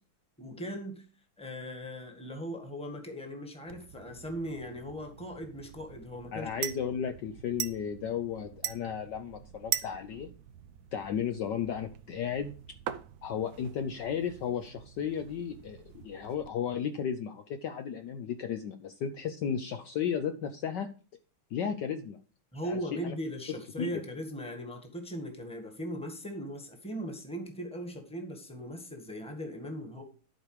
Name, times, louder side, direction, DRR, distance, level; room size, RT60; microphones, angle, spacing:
voice 1, 0.4-1.0 1.4-6.7 22.5-30.0, equal, 5° left, 1.5 m, -39 dB
sound 1, 3.7-16.5, right 11 dB, 70° right, 0.9 m, -42 dB
voice 2, 6.3-10.3 10.9-12.5 13.2-20.9 21.5-22.2 22.6-22.8 23.0-23.1 23.8-24.0, left 8 dB, 65° left, 1.2 m, -34 dB
12.0 x 4.9 x 4.9 m
omnidirectional pair, 2.3 m